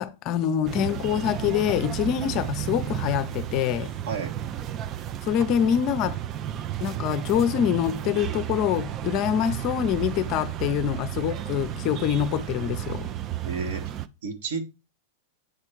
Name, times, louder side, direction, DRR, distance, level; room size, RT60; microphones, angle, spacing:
voice 1, 0.0-3.9 5.2-6.2 6.8-13.1, left 9 dB, 45° left, 0.6 m, -25 dB
sound 1, 0.6-14.1, right 11 dB, 35° right, 0.4 m, -33 dB
voice 2, 13.4-13.9 14.2-14.6, right 5 dB, 65° right, 1.5 m, -31 dB
7.9 x 3.4 x 4.5 m
hypercardioid pair, 95°, 0 cm